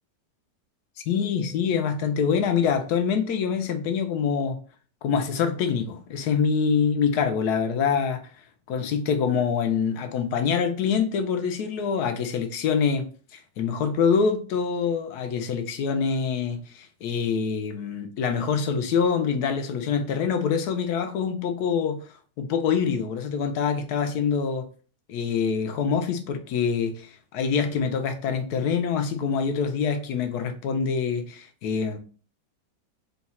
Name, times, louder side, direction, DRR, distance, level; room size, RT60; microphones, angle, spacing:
voice 1, 1.1-4.6 5.0-8.2 8.7-24.7 25.1-32.0, left 6 dB, 70° left, 1.0 m, -25 dB
3.9 x 2.3 x 4.1 m
omnidirectional pair, 2.1 m